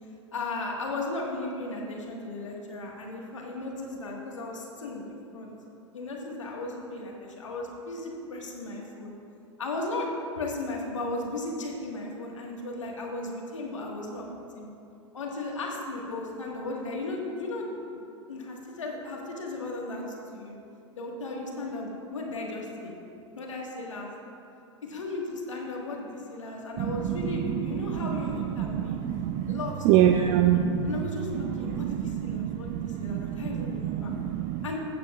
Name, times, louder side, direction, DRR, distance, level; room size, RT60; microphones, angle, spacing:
voice 1, 0.3-5.5 5.9-9.1 9.6-10.1 10.3-14.7 15.1-17.7 17.9-18.0 18.3-20.0 20.3-20.6 21.0-22.9 23.4-24.1 24.8-29.0 29.5-30.4 30.8-34.1 34.6-34.8, left 2 dB, 80° left, -1 dB, 1.7 m, -35 dB
voice 2, 26.8-31.0 31.4-34.7, right 10 dB, 45° right, 7 dB, 0.4 m, -27 dB
15.0 x 8.4 x 2.4 m, 2.7 s
figure-of-eight pair, 90°, 16 cm